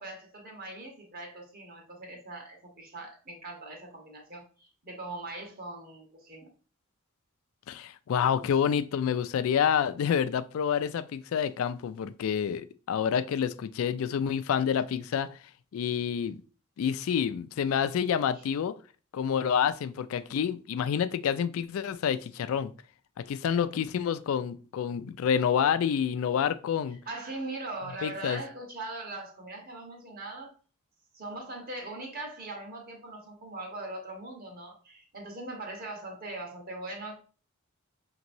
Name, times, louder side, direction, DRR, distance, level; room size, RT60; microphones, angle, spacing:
voice 1, 0.0-6.5 18.3-18.4 27.1-30.5 31.1-37.1, right 2 dB, 45° right, 1.2 m, -41 dB
voice 2, 7.7-15.3 15.7-16.4 16.8-18.8 19.1-22.7 23.3-27.0 28.0-28.4, left 8 dB, 70° left, 0.3 m, -28 dB
5.2 x 3.0 x 2.6 m
head